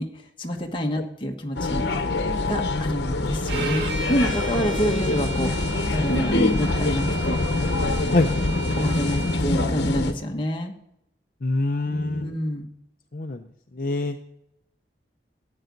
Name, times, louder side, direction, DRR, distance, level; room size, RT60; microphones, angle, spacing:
voice 1, 0.0-1.8 2.5-7.4 8.7-10.7 11.8-12.7, equal, 25° left, 2 dB, 1.3 m, -28 dB
sound 1, 1.5-10.1, left 2 dB, 70° left, 1.1 m, -25 dB
Bowed string instrument, 3.5-9.4, right 2 dB, 75° right, 1.6 m, -35 dB
voice 2, 11.4-12.3 13.1-13.4 13.8-14.2, left 2 dB, 50° left, 5 dB, 0.6 m, -24 dB
13.5 x 9.4 x 3.9 m, 0.80 s
head